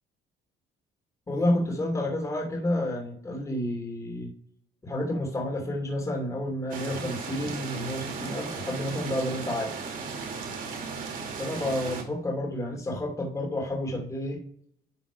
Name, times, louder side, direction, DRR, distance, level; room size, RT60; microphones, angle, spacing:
voice 1, 1.3-4.3 4.8-9.7 11.4-14.4, left 1 dB, 20° left, 0 dB, 2.6 m, -30 dB
sound 1, 6.7-12.0, right 5 dB, 55° right, 2.3 m, -36 dB
11.5 x 3.9 x 4.9 m, 0.66 s
cardioid pair, 110°, 17 cm